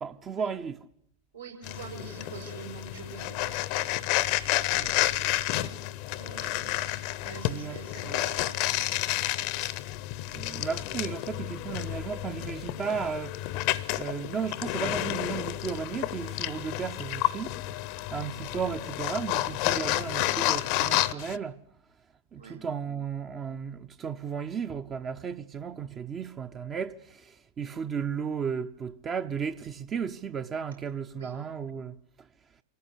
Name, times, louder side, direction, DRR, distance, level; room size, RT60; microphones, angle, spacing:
voice 1, 0.0-0.9 4.8-4.9 7.5-8.2 10.3-13.7 14.0-21.7 22.3-32.3, right 6 dB, 25° right, 0.8 m, -35 dB
voice 2, 1.3-3.6 5.5-5.8 6.1-8.9 22.4-22.6 31.1-31.4, right 6 dB, 75° right, 6.4 m, -45 dB
sound 1, 1.6-21.4, left 16 dB, 45° left, 0.8 m, -30 dB
25.5 x 15.0 x 8.2 m
figure-of-eight pair, 90°, 0 cm